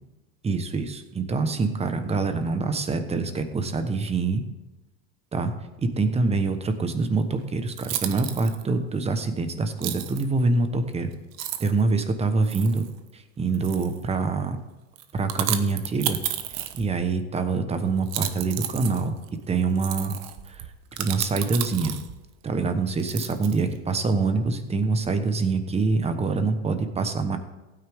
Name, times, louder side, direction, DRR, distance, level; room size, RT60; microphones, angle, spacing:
voice 1, 0.4-4.4 5.3-5.5 5.8-11.1 11.6-12.9 13.1-14.6 15.1-16.2 16.7-19.1 19.5-20.2 20.5-20.6 21.0-21.9 22.4-27.4, right 3 dB, 20° right, 9 dB, 1.1 m, -25 dB
sound 1, 7.2-7.3 7.7-8.6 9.8-10.2 10.9-11.0 11.3-11.8 12.4-12.9 13.5-14.0 15.0-17.1 18.0-22.2 23.0-23.8, right 12 dB, 55° right, 1.0 m, -32 dB
15.5 x 9.4 x 3.6 m, 1.1 s
supercardioid pair, 130°, 32 cm